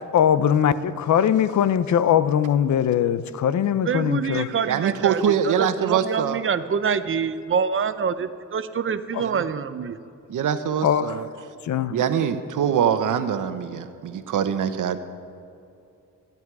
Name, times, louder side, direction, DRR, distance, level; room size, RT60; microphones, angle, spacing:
voice 1, 0.0-4.5 9.1-9.2 10.8-11.3 11.6-12.0, left 9 dB, 65° left, 0.7 m, -21 dB
voice 2, 3.6-5.2 5.4-10.0, right 6 dB, 40° right, 0.8 m, -26 dB
voice 3, 4.6-6.4 9.2-9.4 10.3-11.3 11.9-15.0, right 8 dB, 80° right, 1.1 m, -24 dB
27.0 x 11.0 x 4.8 m
wide cardioid pair, 135°, 31 cm